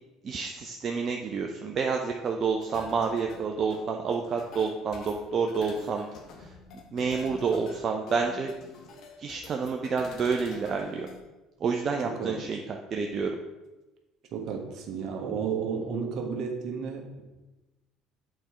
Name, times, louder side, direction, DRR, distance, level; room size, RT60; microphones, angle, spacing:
voice 1, 0.2-6.1 6.4-6.5 6.9-8.5 9.2-11.1 11.6-13.3, right 5 dB, 45° right, 2 dB, 0.6 m, -29 dB
sound 1, 2.6-11.2, left 4 dB, 60° left, 1.2 m, -47 dB
voice 2, 12.0-12.4 14.3-17.2, right 6 dB, 60° right, 3 dB, 1.3 m, -32 dB
7.7 x 4.4 x 4.9 m, 1.1 s
hypercardioid pair, 70°, 0 cm